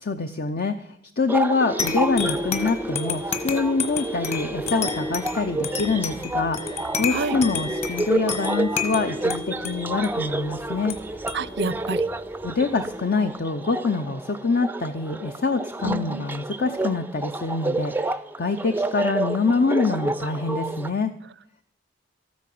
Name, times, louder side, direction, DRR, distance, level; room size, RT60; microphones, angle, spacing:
voice 1, 0.0-11.0 12.4-21.1, left 4 dB, 55° left, 8 dB, 0.7 m, -25 dB
sound 1, 1.3-20.9, right 2 dB, 10° right, 0.5 m, -30 dB
sound 2, 1.8-12.9, left 4 dB, 35° left, 1.4 m, -31 dB
voice 2, 11.3-12.1 15.8-16.3, right 3 dB, 60° right, 19 dB, 0.6 m, -28 dB
14.0 x 9.4 x 7.7 m, 0.72 s
head